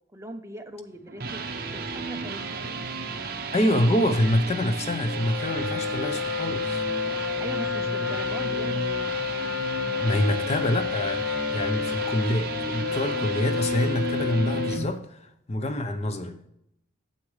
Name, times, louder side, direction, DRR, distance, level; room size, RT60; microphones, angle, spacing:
voice 1, 0.1-1.4 1.7-2.8 7.4-8.9, right 1 dB, 15° right, 0.7 m, -40 dB
sound 1, 0.9-14.8, right 3 dB, 50° right, 0.9 m, -33 dB
voice 2, 3.5-6.8 10.0-16.4, left 1 dB, 30° left, 0.6 m, -26 dB
Wind instrument woodwind instrument, 5.1-15.0, left 7 dB, 85° left, 0.5 m, -30 dB
9.6 x 7.4 x 3.2 m
head